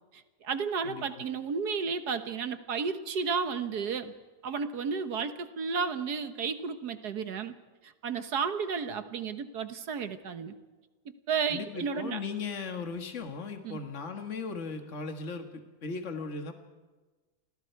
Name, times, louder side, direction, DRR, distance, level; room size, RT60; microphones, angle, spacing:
voice 1, 0.4-4.1 4.4-7.5 8.0-10.5 11.3-12.2 13.6-13.8, right 5 dB, 75° right, 9 dB, 1.7 m, -32 dB
voice 2, 11.5-16.5, left 4 dB, 45° left, 5 dB, 2.1 m, -37 dB
29.5 x 25.0 x 4.7 m, 1.3 s
omnidirectional pair, 1.7 m